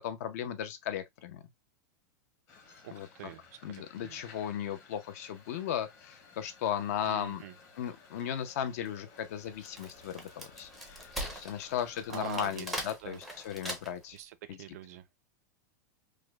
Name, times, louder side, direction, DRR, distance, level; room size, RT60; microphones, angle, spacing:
voice 1, 0.0-1.4 2.9-3.1 3.6-7.4 7.8-14.2 14.5-14.6, left 9 dB, 50° left, 0.6 m, -36 dB
sound 1, 2.5-12.4, left 4 dB, 20° left, 0.9 m, -56 dB
voice 2, 2.8-4.2 7.0-7.5 12.1-12.7 13.0-13.2 14.1-15.1, right 12 dB, 55° right, 0.5 m, -44 dB
Wood, 9.4-14.2, right 1 dB, ahead, 0.5 m, -41 dB
4.9 x 2.1 x 2.2 m
supercardioid pair, 170°, 10 cm